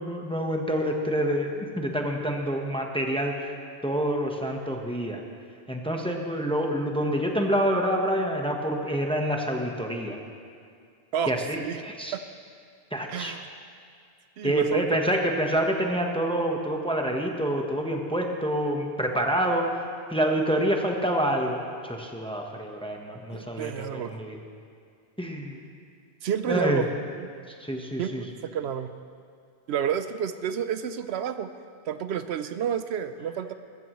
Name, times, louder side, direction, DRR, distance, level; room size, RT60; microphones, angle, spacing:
voice 1, 0.0-3.4 3.8-5.2 5.7-10.2 11.3-12.1 12.9-13.4 14.4-19.7 20.1-24.4 25.2-25.6 26.5-26.8 27.6-28.2, equal, 5° left, 1 dB, 1.1 m, -27 dB
voice 2, 11.1-11.8 12.1-12.2 13.1-13.5 14.4-15.1 23.3-24.2 26.2-26.9 27.2-27.4 28.0-28.9 29.7-31.5 31.9-33.5, right 8 dB, 75° right, 11 dB, 0.8 m, -30 dB
20.5 x 14.0 x 3.1 m, 2.3 s
omnidirectional pair, 1.1 m